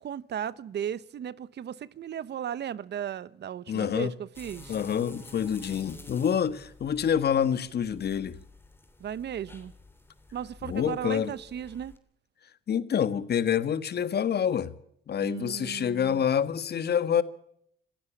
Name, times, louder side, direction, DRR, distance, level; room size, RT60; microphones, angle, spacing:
voice 1, 0.0-4.7 9.0-9.7 10.3-11.9 15.2-16.2, right 9 dB, 60° right, 0.9 m, -36 dB
voice 2, 3.7-4.1 4.7-8.4 10.7-11.3 12.7-14.7 15.1-17.2, left 8 dB, 55° left, 1.6 m, -27 dB
sound 1, 4.3-12.0, left 2 dB, 10° left, 3.0 m, -51 dB
26.5 x 15.5 x 7.2 m
cardioid pair, 90°, 20 cm